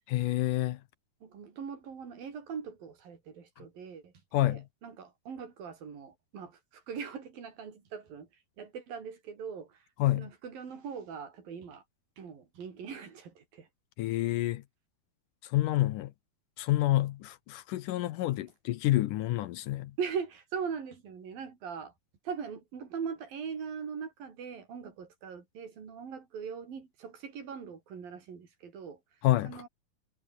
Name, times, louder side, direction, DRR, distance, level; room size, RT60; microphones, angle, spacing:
voice 1, 0.1-0.8 4.3-4.6 10.0-10.3 14.0-14.6 15.5-16.1 16.6-19.9 29.2-29.6, left 15 dB, 75° left, 2.2 m, -28 dB
voice 2, 1.2-4.1 4.4-8.3 8.6-9.8 10.1-11.8 12.2-13.7 20.0-21.9 22.3-29.0 29.4-29.7, right 6 dB, 75° right, 5.8 m, -40 dB
omnidirectional pair, 4.1 m